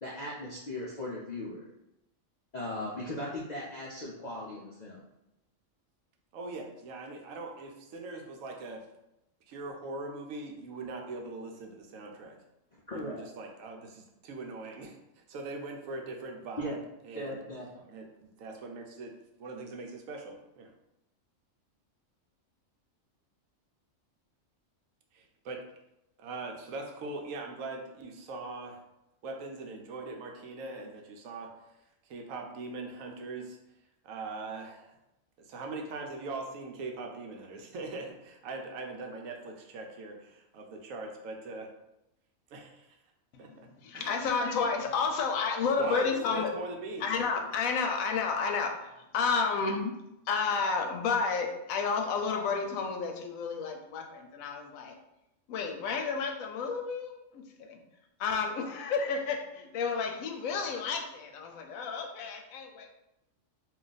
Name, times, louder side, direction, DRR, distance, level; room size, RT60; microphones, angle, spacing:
voice 1, 0.0-1.7 2.5-5.1 12.9-13.3 16.6-16.8 17.1-17.7, left 1 dB, 60° left, -6 dB, 0.4 m, -38 dB
voice 2, 6.3-8.9 9.5-12.4 12.9-15.0 15.3-16.8 17.0-17.4 17.9-19.1 19.4-20.7 25.1-25.6 26.2-28.8 29.2-31.5 32.1-33.6 34.0-35.0 35.4-41.7 42.5-43.0 43.4-43.7 43.9-44.2 45.8-47.3, right 3 dB, 80° right, 2 dB, 1.0 m, -41 dB
voice 3, 43.8-46.5 47.0-50.0 50.3-55.0 55.5-57.8 58.2-62.9, left 5 dB, 85° left, 3 dB, 1.0 m, -31 dB
2.5 x 2.4 x 3.9 m, 0.90 s
omnidirectional pair, 1.4 m